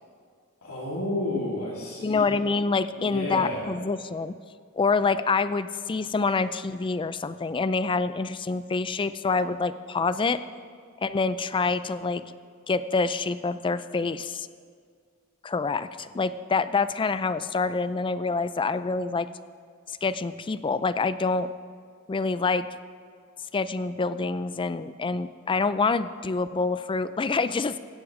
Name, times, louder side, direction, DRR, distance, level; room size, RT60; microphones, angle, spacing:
voice 1, 0.6-2.3 3.0-3.6, left 1 dB, 75° left, -6 dB, 2.7 m, -31 dB
voice 2, 2.0-4.4 4.7-10.4 11.0-12.2 12.7-14.5 15.4-19.3 19.9-21.5 22.1-22.7 23.5-27.8, left 4 dB, 20° left, 14 dB, 0.4 m, -26 dB
16.0 x 9.7 x 5.0 m, 2.1 s
head